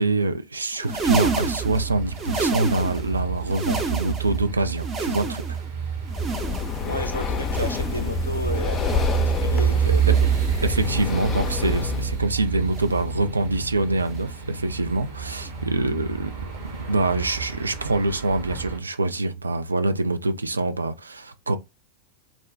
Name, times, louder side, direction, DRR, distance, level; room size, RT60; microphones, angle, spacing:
voice 1, 0.0-5.6 9.8-10.2 10.6-16.4 16.9-21.6, right 2 dB, 80° right, 0.3 m, -25 dB
sound 1, 0.7-3.1 3.4-4.4 4.7-5.7 6.1-6.9 7.4-8.1 8.7-9.4 10.0-10.6 11.3-11.9 12.7-13.1 14.0-14.3 15.3-15.5 16.7-16.8, right 3 dB, 25° right, 0.6 m, -30 dB
sound 2, 1.0-18.8, right 8 dB, 55° right, 0.9 m, -29 dB
Breathing, 6.1-12.2, left 7 dB, 25° left, 0.5 m, -28 dB
voice 2, 6.8-10.3, left 1 dB, 90° left, 0.4 m, -32 dB
2.4 x 2.1 x 3.3 m
figure-of-eight pair, 90°, 0 cm